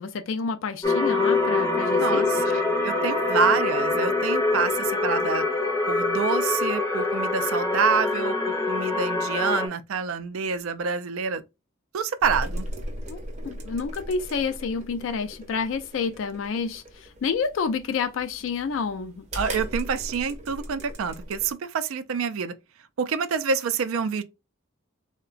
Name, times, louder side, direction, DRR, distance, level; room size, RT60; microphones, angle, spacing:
voice 1, 0.0-2.4 13.1-19.2, left 5 dB, 65° left, 0.3 m, -29 dB
sound 1, 0.8-9.7, left 3 dB, 15° left, 0.5 m, -24 dB
voice 2, 2.0-5.4 5.9-11.4 11.9-12.7 19.3-22.5 23.0-24.2, right 6 dB, 75° right, 0.4 m, -27 dB
sound 2, 12.2-21.5, equal, 30° right, 0.6 m, -38 dB
3.7 x 2.1 x 2.4 m
head